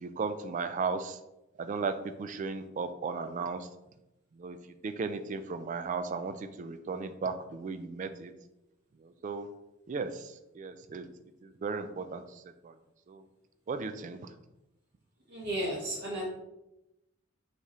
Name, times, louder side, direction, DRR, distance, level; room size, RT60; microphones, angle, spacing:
voice 1, 0.0-1.2 1.6-3.7 4.3-4.6 4.8-8.3 9.0-9.5 9.9-11.1 11.4-12.7 13.1-13.2 13.7-14.3, right 4 dB, 40° right, 10 dB, 0.3 m, -36 dB
voice 2, 15.3-16.2, right 1 dB, 55° right, -4 dB, 1.0 m, -33 dB
4.5 x 3.4 x 3.0 m, 0.92 s
head